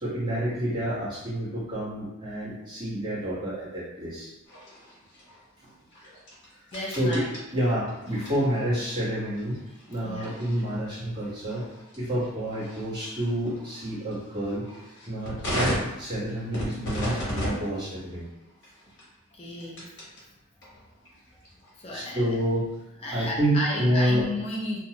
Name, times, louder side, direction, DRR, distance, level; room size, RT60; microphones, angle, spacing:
voice 1, 0.0-4.3 6.9-7.2 7.5-9.6 9.9-11.7 11.9-14.6 15.1-18.3 21.9-22.7 23.1-24.3, right 1 dB, 20° right, -11 dB, 1.1 m, -28 dB
sound 1, 4.4-20.2 20.6-22.7, equal, 55° left, 1.1 m, -38 dB
voice 2, 6.7-7.3 10.0-10.3 19.3-19.9 21.8-22.4 23.0-24.8, left 1 dB, 25° left, -3 dB, 0.4 m, -33 dB
2.5 x 2.2 x 2.9 m, 0.94 s
head